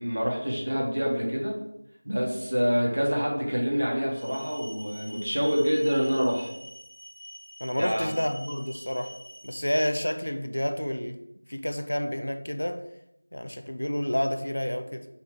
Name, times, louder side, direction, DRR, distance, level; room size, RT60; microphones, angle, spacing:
voice 1, 0.0-1.6 2.0-6.5 7.8-8.1, equal, 60° right, -2 dB, 2.0 m, -26 dB
sound 1, 4.1-9.5, equal, 15° right, 0.8 m, -46 dB
voice 2, 7.6-9.2 9.4-11.2 11.5-12.9 13.3-15.1, equal, 65° left, 8 dB, 0.6 m, -29 dB
5.6 x 3.8 x 4.6 m, 0.81 s
figure-of-eight pair, 175°, 0 cm